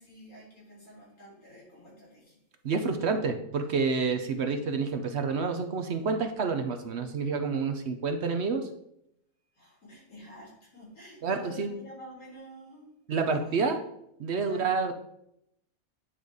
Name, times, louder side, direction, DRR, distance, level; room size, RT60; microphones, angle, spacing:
voice 1, 0.0-2.4 9.5-12.9 13.2-13.8 14.4-14.7, equal, 90° left, -5 dB, 3.8 m, -49 dB
voice 2, 2.6-8.6 11.2-11.7 13.1-13.8 14.2-14.9, right 4 dB, 60° right, 6 dB, 0.9 m, -28 dB
9.4 x 4.0 x 4.8 m, 0.77 s
omnidirectional pair, 1.5 m